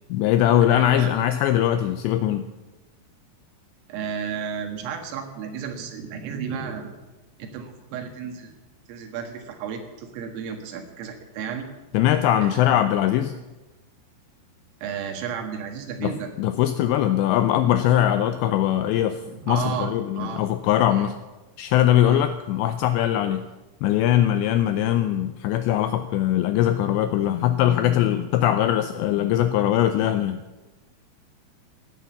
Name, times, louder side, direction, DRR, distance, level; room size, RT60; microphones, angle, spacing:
voice 1, 0.1-2.5 11.9-13.3 16.0-19.2 19.5-21.1 21.6-23.4 23.8-30.4, left 11 dB, 85° left, 10 dB, 2.5 m, -21 dB
voice 2, 0.7-1.3 3.9-7.0 7.4-8.5 8.9-11.7 12.4-12.8 14.8-16.3 18.8-20.5 20.9-21.1 22.1-22.2, right 7 dB, 85° right, 4 dB, 4.3 m, -33 dB
16.5 x 9.6 x 7.0 m, 1.1 s
omnidirectional pair, 5.7 m